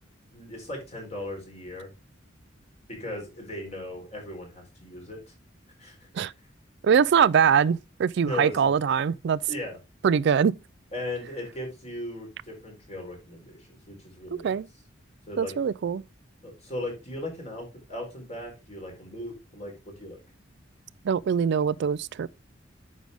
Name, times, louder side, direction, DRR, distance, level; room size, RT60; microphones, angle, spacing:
voice 1, 0.3-1.9 2.9-5.3 5.8-6.3 8.2-8.7 9.5-9.8 10.9-14.6 15.3-15.5 16.4-20.2, left 1 dB, 35° left, 4.4 m, -37 dB
voice 2, 6.8-9.4 10.0-10.5 14.4-14.7 15.4-16.0 21.0-22.3, right 7 dB, 60° right, 0.3 m, -23 dB
9.2 x 6.3 x 3.5 m
head